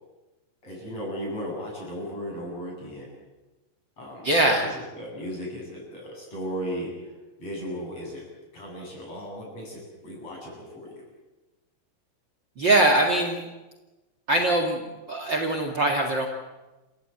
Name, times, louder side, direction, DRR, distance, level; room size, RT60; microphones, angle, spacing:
voice 1, 0.6-3.1 4.0-4.3 4.6-6.9 7.4-8.3 8.5-11.0, equal, 30° left, -1 dB, 9.0 m, -36 dB
voice 2, 4.2-4.7 12.6-13.4 14.3-14.8 15.1-16.3, right 1 dB, 85° right, 3 dB, 1.0 m, -22 dB
28.5 x 16.0 x 8.8 m, 1.1 s
omnidirectional pair, 5.8 m